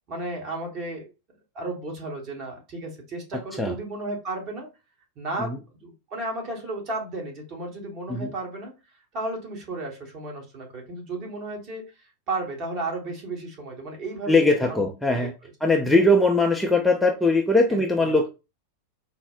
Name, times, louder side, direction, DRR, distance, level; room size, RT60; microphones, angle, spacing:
voice 1, 0.1-1.1 1.5-4.7 5.2-8.7 9.1-11.8 12.3-14.8 15.9-16.0 17.7-18.1, right 2 dB, 35° right, 1 dB, 1.1 m, -33 dB
voice 2, 14.3-15.3 15.6-18.3, left 2 dB, 5° left, 1 dB, 0.4 m, -20 dB
4.2 x 2.0 x 2.4 m, 0.28 s
figure-of-eight pair, 90°, 0 cm